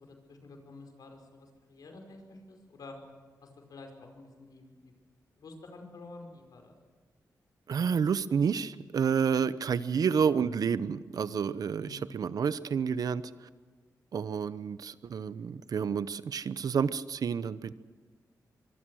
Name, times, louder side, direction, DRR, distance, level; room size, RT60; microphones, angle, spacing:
voice 1, 0.0-3.0 3.4-4.9 5.4-6.8 11.8-12.2, left 3 dB, 75° left, 4 dB, 5.3 m, -49 dB
voice 2, 7.7-13.2 14.1-17.7, right 6 dB, 70° right, 15 dB, 0.8 m, -29 dB
24.0 x 24.0 x 6.4 m, 1.5 s
wide cardioid pair, 115°, 7 cm